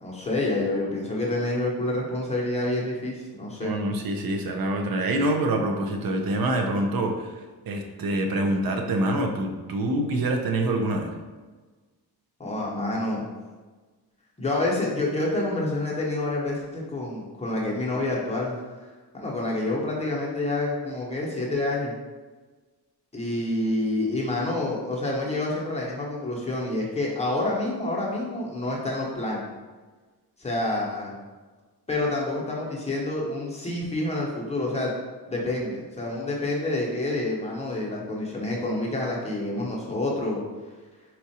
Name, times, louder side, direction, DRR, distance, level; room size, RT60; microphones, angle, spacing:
voice 1, 0.0-3.7 12.4-13.2 14.4-18.5 19.1-21.9 23.1-29.4 30.4-31.1 31.9-34.9 35.3-40.4, left 2 dB, 15° left, -3 dB, 0.8 m, -28 dB
voice 2, 3.6-11.1, right 1 dB, 60° right, 4 dB, 0.6 m, -26 dB
4.3 x 2.4 x 2.8 m, 1.3 s
cardioid pair, 95°, 40 cm